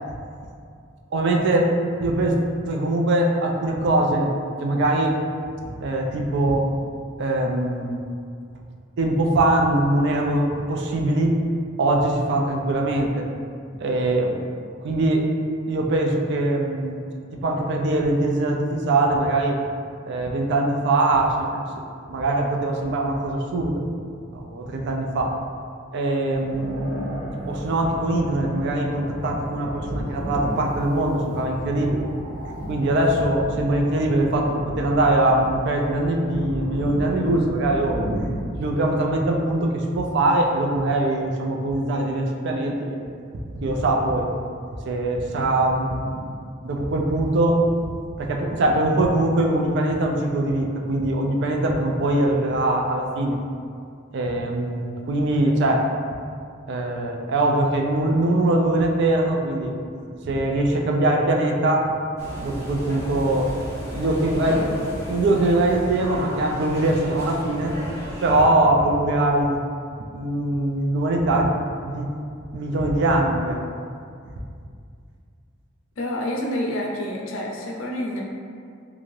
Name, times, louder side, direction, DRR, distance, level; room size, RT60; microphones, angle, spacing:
voice 1, 1.1-1.7 2.0-2.4 2.7-4.3 4.6-5.2 5.8-6.7 7.2-8.0 9.0-11.4 11.8-13.2 13.8-14.3 14.8-15.2 15.7-17.0 17.4-19.6 20.0-21.6 22.1-23.8 24.3-25.3 25.9-27.0 27.5-32.0 32.7-38.0 38.6-43.0 43.6-44.3 44.9-46.2 46.6-47.6 48.2-53.4 54.1-55.9 56.7-59.7 60.2-61.9 62.4-63.5 63.9-67.7 68.2-69.6 70.1-72.1 72.5-73.7, right 1 dB, 60° right, 1 dB, 0.3 m, -22 dB
sound 1, 26.3-38.6, equal, 5° right, 1.0 m, -33 dB
sound 2, 62.2-68.4, equal, 15° left, 0.6 m, -34 dB
voice 2, 76.0-78.2, left 1 dB, 75° left, -1 dB, 0.5 m, -28 dB
2.6 x 2.4 x 3.1 m, 2.3 s
head